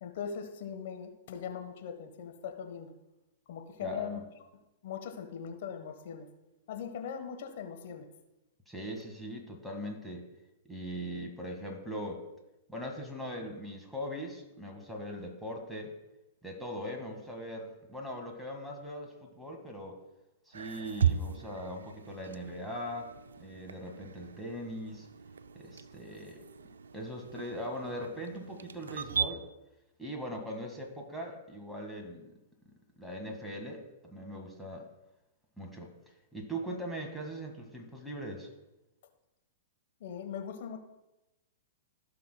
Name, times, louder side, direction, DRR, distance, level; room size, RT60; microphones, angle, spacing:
voice 1, 0.0-2.9 3.5-4.2 4.8-6.3 6.7-8.0 40.0-40.8, left 7 dB, 60° left, 6 dB, 1.2 m, -40 dB
voice 2, 3.8-4.2 8.7-10.3 10.7-12.2 12.7-15.9 16.4-20.0 20.5-23.1 23.4-25.1 25.5-26.4 26.9-29.4 30.0-32.3 33.0-34.9 35.6-35.9 36.3-38.5, equal, ahead, 1 dB, 1.8 m, -40 dB
sound 1, 20.5-29.3, right 7 dB, 80° right, 0.4 m, -37 dB
16.0 x 5.9 x 2.3 m, 0.96 s
hypercardioid pair, 115°, 0 cm